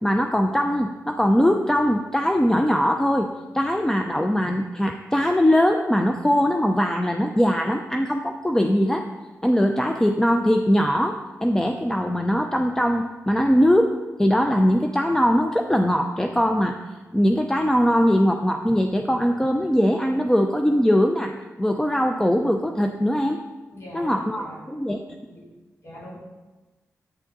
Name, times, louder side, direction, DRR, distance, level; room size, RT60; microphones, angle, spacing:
voice 1, 0.0-9.1 9.4-16.8 17.1-23.4 23.9-25.0, equal, 10° left, 4 dB, 0.6 m, -21 dB
voice 2, 23.7-24.6 25.3-25.4 25.8-26.1, left 1 dB, 55° left, -5 dB, 3.9 m, -41 dB
10.5 x 9.1 x 3.9 m, 1.2 s
cardioid pair, 70°, 5 cm